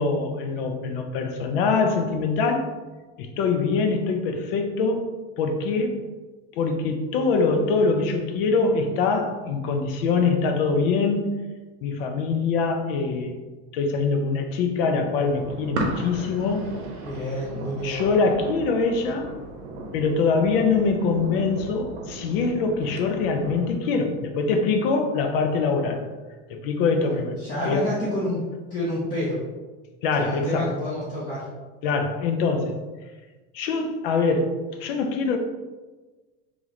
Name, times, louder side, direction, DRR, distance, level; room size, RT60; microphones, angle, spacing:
voice 1, 0.0-2.7 3.2-5.1 5.4-6.1 6.5-11.3 11.8-13.4 13.7-16.7 17.8-19.3 19.9-26.0 26.5-27.4 27.6-27.8 30.0-30.7 31.8-32.8 33.5-35.4, left 4 dB, 55° left, 5 dB, 0.6 m, -24 dB
sound 1, 15.2-23.7, right 2 dB, 90° right, 0.9 m, -35 dB
voice 2, 17.0-18.0 26.9-28.4 28.7-29.4 30.2-31.5, left 1 dB, 15° left, -9 dB, 0.6 m, -29 dB
3.1 x 3.0 x 3.9 m, 1.3 s
supercardioid pair, 175°, 34 cm